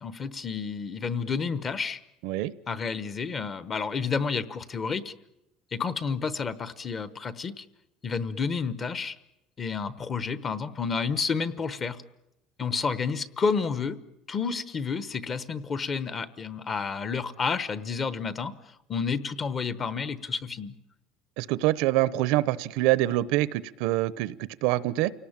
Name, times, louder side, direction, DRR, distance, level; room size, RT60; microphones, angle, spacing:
voice 1, 0.0-2.0 2.7-5.1 5.7-7.6 8.0-9.2 9.6-12.0 12.6-14.0 14.3-20.7, left 5 dB, 25° left, 1.0 m, -30 dB
voice 2, 21.4-25.1, right 17 dB, 70° right, 0.8 m, -25 dB
29.0 x 18.5 x 8.8 m
cardioid pair, 175°, 0 cm